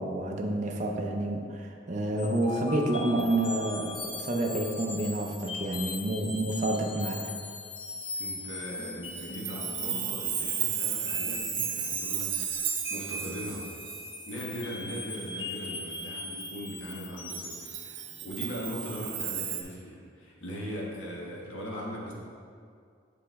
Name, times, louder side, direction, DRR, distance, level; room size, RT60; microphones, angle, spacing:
voice 1, 0.0-7.2, right 1 dB, 40° right, 1 dB, 0.5 m, -29 dB
sound 1, 2.2-17.7, left 3 dB, 25° left, 0.4 m, -39 dB
voice 2, 8.1-13.7 14.2-22.1, equal, 85° left, -4 dB, 1.4 m, -39 dB
Chime, 9.0-15.1 15.6-15.7 17.3-19.6, right 9 dB, 85° right, 0.6 m, -34 dB
6.9 x 4.9 x 3.4 m, 2.2 s
head